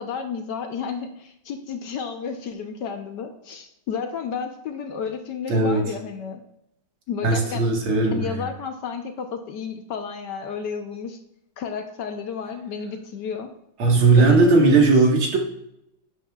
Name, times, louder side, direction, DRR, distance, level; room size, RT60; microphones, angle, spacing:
voice 1, 0.0-6.4 7.1-7.7 8.1-11.2 11.6-13.5 14.2-14.7 15.0-15.1, left 6 dB, 65° left, 5 dB, 1.3 m, -32 dB
voice 2, 5.5-5.8 7.2-8.4 13.8-15.4, right 3 dB, 80° right, 0 dB, 2.5 m, -17 dB
11.0 x 8.3 x 2.4 m, 0.79 s
omnidirectional pair, 2.3 m